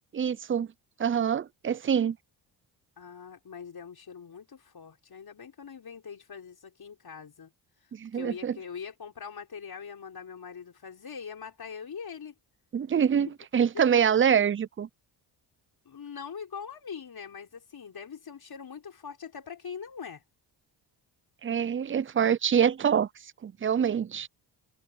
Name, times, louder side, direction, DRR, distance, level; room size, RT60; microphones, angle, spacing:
voice 1, 0.1-0.7 1.0-2.2 7.9-8.6 12.7-13.3 13.5-14.9 21.4-23.1 23.4-24.3, right 8 dB, 25° right, 0.6 m, -25 dB
voice 2, 3.0-7.5 8.1-12.3 13.3-13.4 13.7-13.8 15.8-20.2, left 6 dB, 50° left, 4.9 m, -42 dB
supercardioid pair, 55°, 47 cm